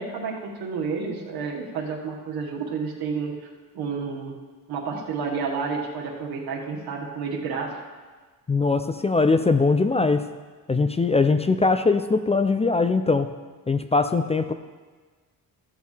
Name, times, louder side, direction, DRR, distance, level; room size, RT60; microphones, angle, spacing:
voice 1, 0.0-3.3 3.7-4.4 4.7-7.8, right 5 dB, 80° right, -1 dB, 1.7 m, -30 dB
voice 2, 8.5-10.3 10.7-13.3 13.7-14.5, left 3 dB, 20° left, 9 dB, 0.3 m, -21 dB
15.0 x 8.1 x 3.3 m, 1.4 s
cardioid pair, 105°, 37 cm